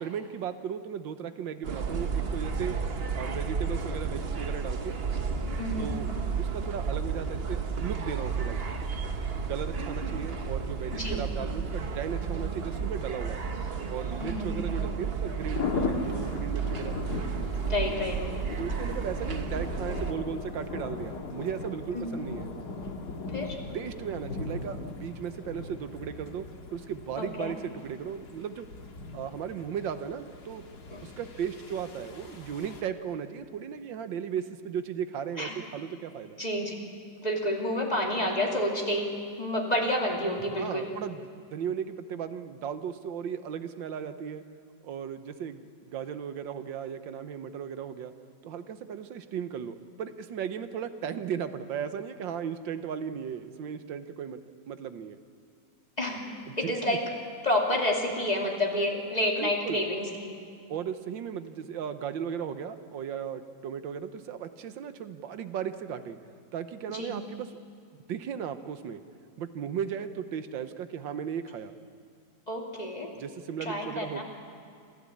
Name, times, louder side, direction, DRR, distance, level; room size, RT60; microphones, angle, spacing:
voice 1, 0.0-2.8 3.1-5.0 5.8-6.1 6.4-8.6 9.5-13.4 13.9-17.0 18.6-22.5 23.7-26.5 26.7-28.7 29.1-30.6 31.0-36.4 40.6-44.4 44.8-48.1 48.4-54.4 54.7-55.2 56.5-57.0 59.4-59.8 60.7-66.2 66.5-67.5 68.1-69.0 69.4-71.7 73.2-74.2, right 8 dB, 90° right, 10 dB, 1.7 m, -36 dB
sound 1, 1.6-20.1, right 5 dB, 40° right, 1.1 m, -32 dB
voice 2, 5.6-6.0 10.9-11.3 14.2-14.6 17.7-18.2 21.9-22.2 23.3-23.6 27.2-27.5 30.9-31.0 35.4-35.5 36.4-36.7 37.2-39.1 39.4-40.9 56.0-57.0 57.4-60.4 66.9-67.2 72.5-73.1 73.6-74.2, left 1 dB, 20° left, -1 dB, 2.7 m, -29 dB
sound 2, 15.5-32.8, left 4 dB, 60° left, 2.2 m, -38 dB
26.5 x 15.5 x 8.6 m, 2.3 s
omnidirectional pair, 2.0 m